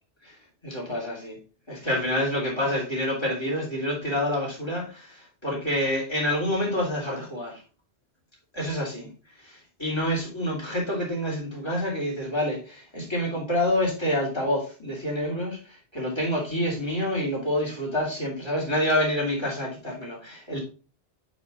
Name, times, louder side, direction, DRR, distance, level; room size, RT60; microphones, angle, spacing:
voice 1, 0.6-1.4 1.7-7.6 8.5-9.1 9.4-20.6, left 1 dB, 25° left, -2 dB, 3.3 m, -27 dB
8.3 x 5.0 x 4.0 m, 0.35 s
omnidirectional pair, 1.2 m